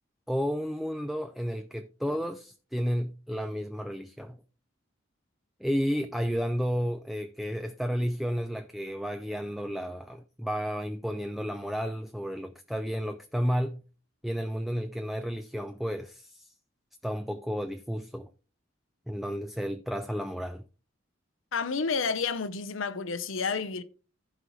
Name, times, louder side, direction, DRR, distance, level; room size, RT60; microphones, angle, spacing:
voice 1, 0.3-4.4 5.6-13.8 14.2-16.5 17.0-18.3 19.1-20.6, equal, ahead, 0.4 m, -32 dB
voice 2, 21.5-23.8, left 5 dB, 85° left, 0.8 m, -30 dB
15.0 x 5.4 x 3.1 m
head